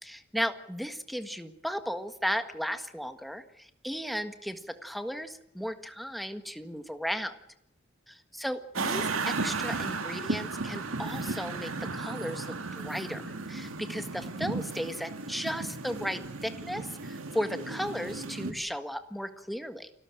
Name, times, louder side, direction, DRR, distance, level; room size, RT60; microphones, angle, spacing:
voice 1, 0.0-7.4 8.1-12.5 12.7-13.2 13.5-19.9, equal, ahead, 9 dB, 1.6 m, -35 dB
sound 1, 8.8-18.5, right 3 dB, 85° right, 2.1 m, -35 dB
29.0 x 13.0 x 9.1 m, 0.77 s
head